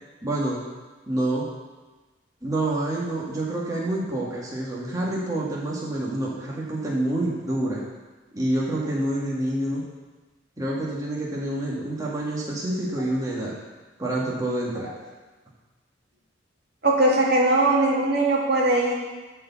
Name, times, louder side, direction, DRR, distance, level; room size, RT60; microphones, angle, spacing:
voice 1, 0.2-0.6 1.1-1.5 2.4-7.8 8.3-9.8 10.6-13.6 14.0-14.9, right 1 dB, 20° right, -5 dB, 1.9 m, -27 dB
voice 2, 16.8-18.9, right 2 dB, 55° right, -3 dB, 2.1 m, -20 dB
13.0 x 4.7 x 7.1 m, 1.2 s
head